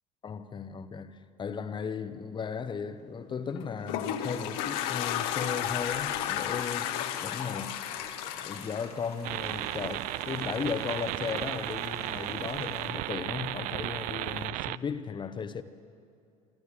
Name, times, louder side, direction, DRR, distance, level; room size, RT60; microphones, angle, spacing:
voice 1, 0.2-7.8 8.4-15.6, left 6 dB, 25° left, 1.1 m, -36 dB
Toilet flush, 3.5-9.9, left 10 dB, 55° left, 1.2 m, -33 dB
Rain, 4.2-12.9, left 3 dB, 90° left, 2.7 m, -49 dB
sound 1, 9.2-14.8, right 17 dB, 45° right, 0.4 m, -34 dB
24.0 x 14.5 x 8.5 m
figure-of-eight pair, 65°, 19 cm